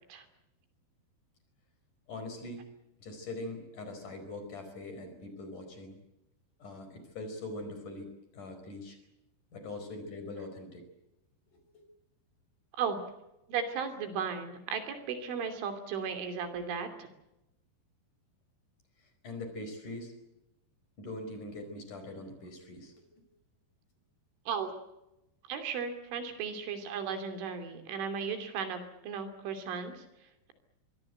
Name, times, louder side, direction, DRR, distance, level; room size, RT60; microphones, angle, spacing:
voice 1, 2.1-2.7 3.0-6.0 6.6-9.0 9.5-10.9 11.7-11.8 19.0-20.1 21.0-23.2, left 2 dB, 45° left, 7 dB, 6.0 m, -42 dB
voice 2, 13.5-17.1 24.5-24.8 25.5-30.0, right 6 dB, 80° right, 8 dB, 5.3 m, -35 dB
25.0 x 21.0 x 8.0 m, 0.91 s
omnidirectional pair, 5.5 m